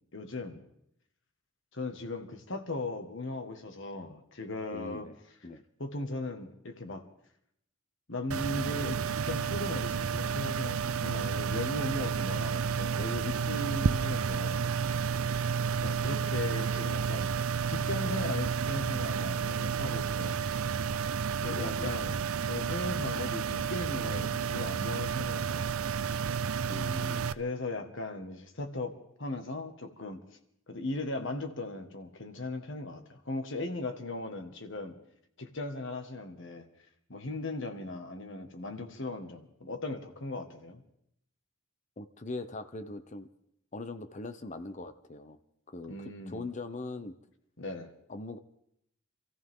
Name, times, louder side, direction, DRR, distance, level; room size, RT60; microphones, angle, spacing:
voice 1, 0.1-0.6 1.7-5.1 5.8-7.0 8.1-15.1 15.8-17.3 17.7-20.4 21.4-22.2 22.5-25.7 27.3-28.9 29.2-30.2 30.7-34.9 35.4-36.6 37.1-40.8 45.9-46.4 47.6-47.9, left 2 dB, 60° left, 6 dB, 1.7 m, -38 dB
voice 2, 4.7-5.2 5.4-5.6 21.5-21.9 26.7-27.3 42.0-43.3 43.7-45.4 45.7-47.2 48.1-48.4, left 2 dB, 35° left, 10 dB, 0.7 m, -41 dB
sound 1, 8.3-27.3, right 6 dB, 85° right, 0.5 m, -31 dB
26.5 x 14.5 x 3.7 m, 0.75 s
head